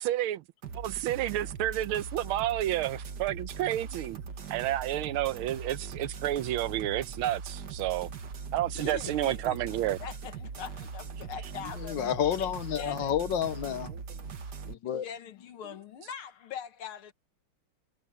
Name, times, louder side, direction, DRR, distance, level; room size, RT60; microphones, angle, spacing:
voice 1, 0.0-0.4 0.8-4.2 4.5-8.1 8.5-10.0, right 13 dB, 85° right, 1.5 m, -30 dB
sound 1, 0.6-14.7, right 5 dB, 55° right, 1.9 m, -41 dB
voice 2, 8.7-12.1 12.7-13.1 15.0-17.1, left 8 dB, 80° left, 2.2 m, -42 dB
voice 3, 11.8-13.9 14.7-15.1, left 9 dB, 65° left, 1.4 m, -30 dB
omnidirectional pair, 2.3 m